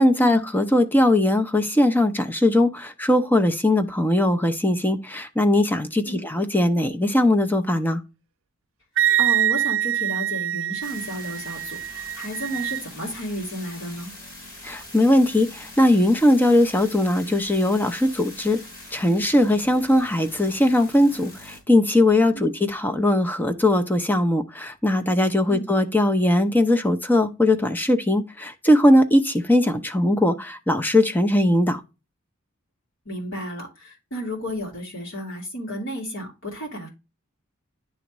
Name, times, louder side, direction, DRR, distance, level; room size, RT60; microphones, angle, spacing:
voice 1, 0.0-8.0 14.6-18.6 18.9-31.8, left 1 dB, 10° left, 0.7 m, -20 dB
Wind instrument woodwind instrument, 9.0-12.8, right 11 dB, 75° right, 0.4 m, -24 dB
voice 2, 9.2-14.1 22.3-22.5 25.5-25.6 33.0-36.9, equal, 80° left, 3.0 m, -32 dB
sound 1, 10.8-21.6, left 2 dB, 50° left, 3.7 m, -43 dB
10.5 x 3.5 x 3.0 m
head